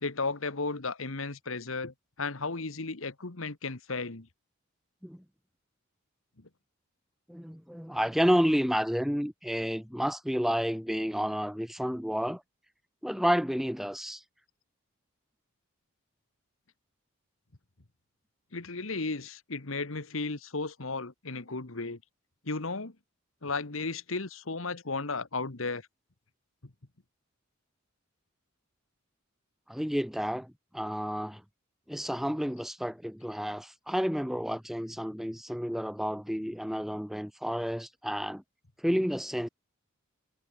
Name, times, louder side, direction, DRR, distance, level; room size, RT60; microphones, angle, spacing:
voice 1, 0.0-4.3 18.5-22.0 22.4-22.9 23.4-25.8, left 3 dB, 70° left, 1.6 m, -34 dB
voice 2, 7.3-12.4 13.0-14.2 29.7-31.4 31.9-38.4 38.8-39.5, equal, ahead, 1.1 m, -30 dB
head